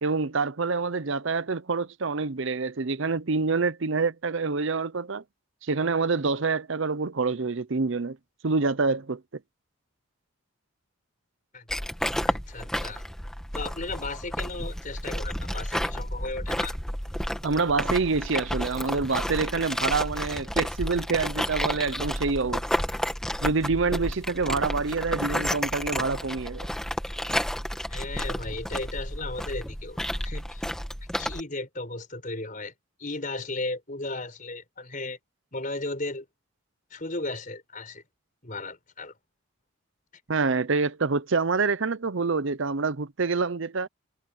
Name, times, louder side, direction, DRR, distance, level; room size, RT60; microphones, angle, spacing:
voice 1, 0.0-5.2 5.6-8.2 8.4-9.2 17.4-22.6 23.4-26.7 40.3-43.9, right 4 dB, 60° right, 0.7 m, -26 dB
sound 1, 11.7-31.4, equal, 5° left, 1.6 m, -31 dB
voice 2, 12.3-13.0 13.5-16.8 27.9-30.6 31.2-32.7 33.0-35.2 35.5-36.2 36.9-38.0 38.4-39.1, left 2 dB, 40° left, 4.9 m, -35 dB
head